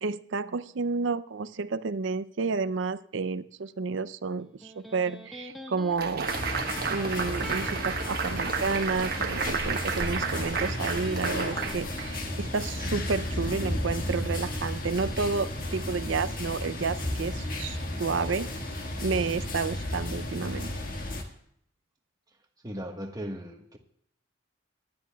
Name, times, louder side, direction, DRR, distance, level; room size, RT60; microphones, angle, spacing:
voice 1, 0.0-6.3 6.9-18.5 19.0-20.7, right 4 dB, 70° right, 15 dB, 0.5 m, -31 dB
Electric guitar, 4.4-11.8, equal, ahead, 1.2 m, -46 dB
sound 1, 6.0-12.4, right 5 dB, 50° right, 1.2 m, -32 dB
sound 2, 6.3-21.2, left 1 dB, 45° left, 1.7 m, -33 dB
voice 2, 22.6-23.8, equal, 20° right, 3 dB, 1.3 m, -37 dB
25.5 x 10.5 x 2.3 m, 0.71 s
head